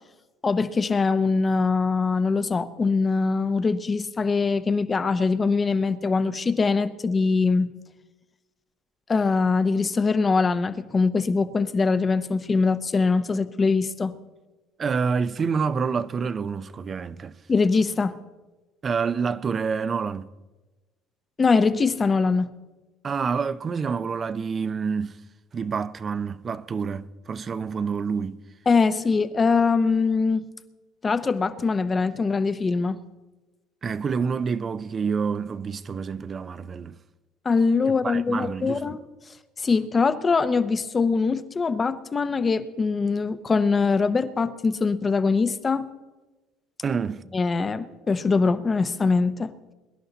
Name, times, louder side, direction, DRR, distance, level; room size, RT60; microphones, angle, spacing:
voice 1, 0.4-7.7 9.1-14.1 17.5-18.2 21.4-22.5 28.7-30.4 31.0-33.0 37.4-39.0 39.6-45.9 47.3-49.5, left 4 dB, 25° left, 0.8 m, -22 dB
voice 2, 14.8-17.3 18.8-20.3 23.0-25.2 25.5-28.4 33.8-36.9 37.9-39.0 46.8-47.2, right 5 dB, 35° right, 0.6 m, -28 dB
23.0 x 11.0 x 4.0 m
supercardioid pair, 105°, 0 cm